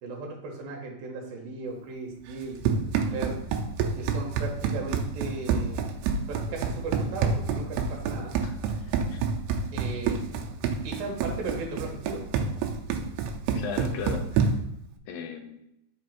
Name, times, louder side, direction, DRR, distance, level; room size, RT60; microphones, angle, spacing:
voice 1, 0.0-2.6 3.1-3.3 4.0-5.8 6.3-8.3 9.7-10.2 10.8-12.2, right 3 dB, 70° right, 0 dB, 2.8 m, -36 dB
Run, 2.3-14.8, right 5 dB, 85° right, 2.6 m, -28 dB
voice 2, 8.4-9.2 13.5-14.5 15.1-15.6, left 6 dB, 80° left, 5 dB, 2.2 m, -37 dB
7.3 x 2.9 x 4.6 m, 0.81 s
omnidirectional pair, 4.6 m